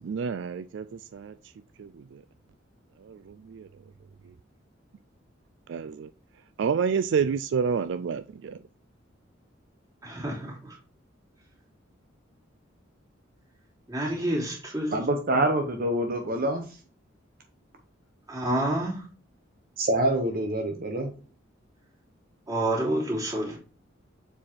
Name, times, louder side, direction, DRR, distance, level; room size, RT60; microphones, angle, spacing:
voice 1, 0.0-1.3 1.8-2.2 3.0-3.7 5.7-6.1 6.6-8.6, right 6 dB, 65° right, 0.3 m, -29 dB
voice 2, 10.0-10.8 13.9-15.0 18.3-19.1 22.5-23.6, right 1 dB, 20° right, 3.0 m, -28 dB
voice 3, 14.9-16.6 19.8-21.1, right 1 dB, 50° right, 1.0 m, -26 dB
7.3 x 4.7 x 4.4 m
head